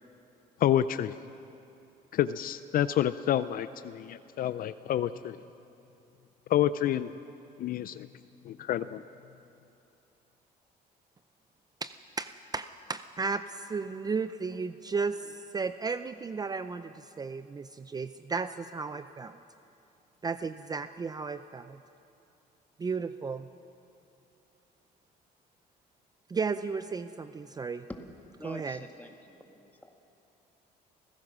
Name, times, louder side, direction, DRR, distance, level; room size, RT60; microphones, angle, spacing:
voice 1, 0.6-1.1 2.1-5.4 6.5-7.1 7.6-8.1 8.4-9.0, left 11 dB, 60° left, 14 dB, 0.5 m, -28 dB
voice 2, 11.8-19.4 20.2-21.8 22.8-23.5 26.3-27.9 28.4-28.9, right 4 dB, 25° right, 11 dB, 0.5 m, -34 dB
voice 3, 28.4-29.7, left 1 dB, 10° left, 4 dB, 2.0 m, -45 dB
29.5 x 16.0 x 6.2 m, 2.7 s
cardioid pair, 110°, 17 cm